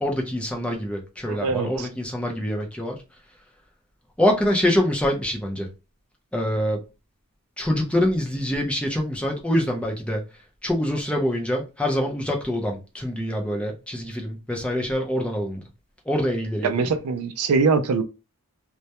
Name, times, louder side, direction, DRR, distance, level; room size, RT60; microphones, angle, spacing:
voice 1, 0.0-3.0 4.2-5.7 6.3-6.8 7.6-10.2 10.6-15.6 16.1-16.9, left 1 dB, 5° left, 0.5 m, -25 dB
voice 2, 1.3-1.9 16.6-18.0, right 4 dB, 75° right, 0.4 m, -23 dB
2.2 x 2.1 x 2.8 m
head